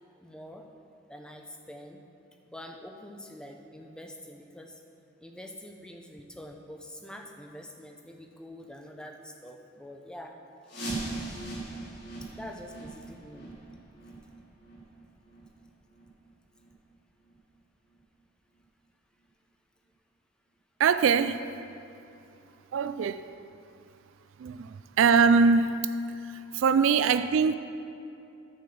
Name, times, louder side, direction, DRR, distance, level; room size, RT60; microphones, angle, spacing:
voice 1, 0.2-0.7 1.1-2.0 2.5-4.8 5.2-10.3 12.2-13.5, left 1 dB, 5° left, 3 dB, 0.6 m, -45 dB
sound 1, 10.7-16.2 16.6-16.7 17.2-17.3 18.0-18.1 18.6-18.7, right 2 dB, 55° left, 2.4 m, -40 dB
voice 2, 20.8-21.4 22.7-23.2 24.4-25.8 26.1-27.6, right 5 dB, 70° right, 11 dB, 0.3 m, -23 dB
9.6 x 5.1 x 6.8 m, 2.7 s
head